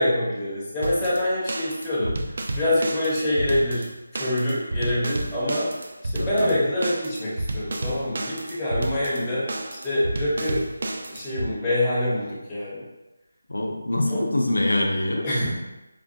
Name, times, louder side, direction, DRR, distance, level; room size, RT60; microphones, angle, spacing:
voice 1, 0.0-2.1 2.5-3.8 4.1-5.7 6.0-10.6 11.1-12.8 14.1-14.2 15.2-15.6, left 1 dB, 10° left, -12 dB, 1.0 m, -25 dB
sound 1, 0.8-11.5, right 1 dB, 55° right, 0.4 m, -31 dB
voice 2, 6.2-6.5 13.5-15.4, left 1 dB, 90° left, 1 dB, 0.7 m, -24 dB
5.0 x 2.3 x 2.6 m, 1.0 s
figure-of-eight pair, 165°, 0 cm